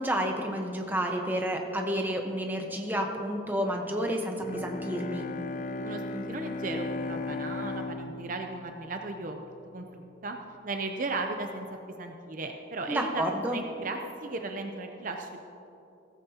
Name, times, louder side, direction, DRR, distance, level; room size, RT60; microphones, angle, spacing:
voice 1, 0.0-5.2 12.9-13.6, equal, 10° right, 2 dB, 1.0 m, -30 dB
Bowed string instrument, 4.4-9.7, left 3 dB, 45° left, 0.3 m, -36 dB
voice 2, 5.8-9.5 9.7-10.4 10.6-11.7 12.0-13.2 13.5-15.4, right 3 dB, 45° right, 4 dB, 0.6 m, -36 dB
16.0 x 14.5 x 2.9 m, 2.9 s
head